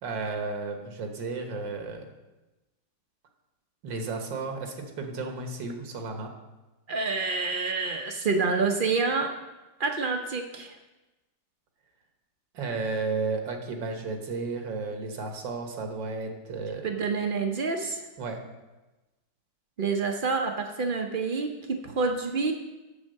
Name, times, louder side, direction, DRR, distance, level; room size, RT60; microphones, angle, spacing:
voice 1, 0.0-2.0 3.8-6.3 12.5-16.9 18.2-18.4, right 3 dB, 90° right, 4 dB, 1.9 m, -33 dB
voice 2, 6.9-9.3 9.8-10.8 16.8-18.0 19.8-22.5, right 4 dB, 70° right, 4 dB, 0.4 m, -27 dB
8.0 x 7.2 x 6.4 m, 1.1 s
omnidirectional pair, 1.9 m